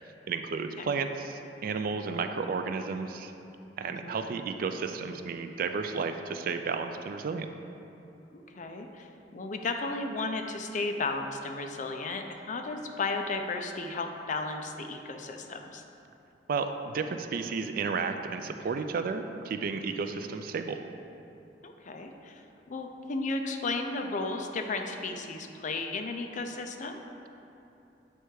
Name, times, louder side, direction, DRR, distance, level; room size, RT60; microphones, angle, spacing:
voice 1, 0.3-3.3 3.8-7.5 16.5-20.8, right 5 dB, 55° right, 7 dB, 0.3 m, -32 dB
voice 2, 3.9-4.2 8.3-9.1 9.3-15.8 21.6-22.4 22.7-27.0, left 3 dB, 45° left, 4 dB, 0.5 m, -34 dB
7.9 x 3.3 x 4.7 m, 2.9 s
head